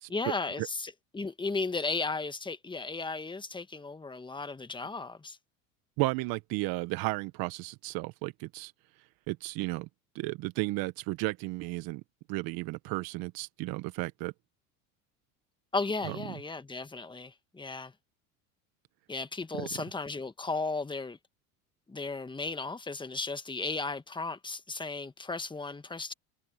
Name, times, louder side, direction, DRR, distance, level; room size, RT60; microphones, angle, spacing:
voice 1, 0.1-5.4 15.7-17.9 19.1-21.2 21.9-26.1, left 3 dB, 10° left, 1.6 m, -35 dB
voice 2, 6.0-8.7 9.3-9.9 10.1-12.0 12.3-14.3 16.0-16.2 19.5-19.7, right 22 dB, 60° right, 1.2 m, -33 dB
supercardioid pair, 90°, 40 cm